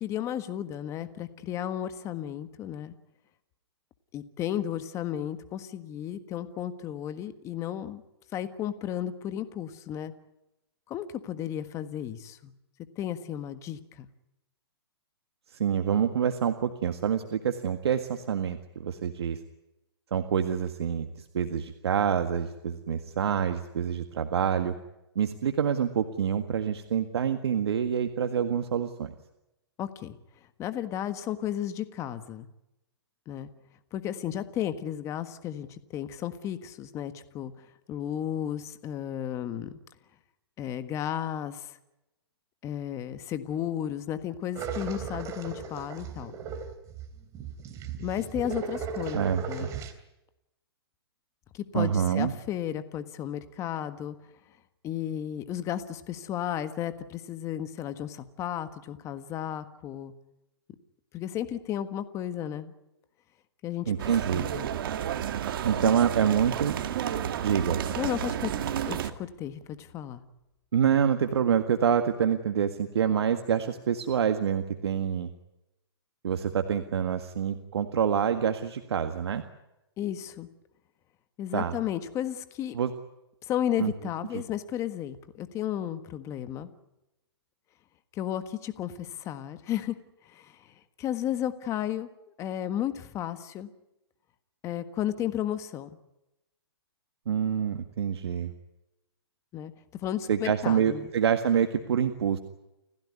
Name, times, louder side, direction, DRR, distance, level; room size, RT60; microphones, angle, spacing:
voice 1, 0.0-2.9 4.1-8.0 8.3-10.1 10.9-12.5 13.0-14.1 29.8-30.2 30.6-32.5 33.3-33.5 33.9-37.5 37.9-39.7 40.6-41.8 42.6-46.4 48.0-49.7 51.5-54.2 54.8-60.1 61.1-62.7 63.6-63.9 64.3-64.7 65.8-65.9 68.0-70.2 80.0-80.5 81.4-82.8 83.4-86.7 88.1-89.9 90.3-90.6 91.0-92.1 92.4-93.7 94.6-95.9 99.5-101.1, left 11 dB, 20° left, 11 dB, 1.5 m, -33 dB
voice 2, 15.6-19.4 20.1-24.8 25.2-29.1 49.1-49.7 51.7-52.3 63.9-64.5 65.6-66.8 67.4-67.8 70.7-75.3 76.2-79.4 81.5-81.7 82.7-82.9 83.8-83.9 84.3-84.4 97.3-98.5 100.3-102.4, right 8 dB, 75° right, 7 dB, 1.8 m, -26 dB
sound 1, 44.6-49.9, right 6 dB, 20° right, 2.9 m, -37 dB
sound 2, 64.0-69.1, right 10 dB, 55° right, 2.0 m, -31 dB
sound 3, 67.7-70.7, left 6 dB, 40° left, 7.4 m, -50 dB
29.5 x 15.5 x 9.7 m, 0.93 s
hypercardioid pair, 150°, 14 cm